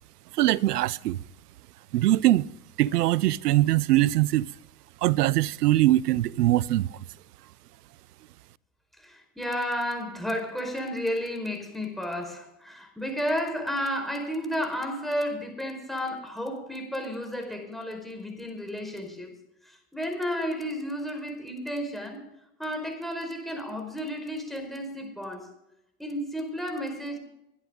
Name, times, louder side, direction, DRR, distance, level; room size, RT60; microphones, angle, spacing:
voice 1, 0.3-1.2 1.9-2.5 2.8-4.5 5.0-7.0, right 15 dB, 85° right, 0.6 m, -22 dB
voice 2, 9.0-19.3 19.6-22.2 22.6-25.5 26.0-27.2, equal, ahead, 4.7 m, -32 dB
21.0 x 11.5 x 3.8 m
hypercardioid pair, 90°, 46 cm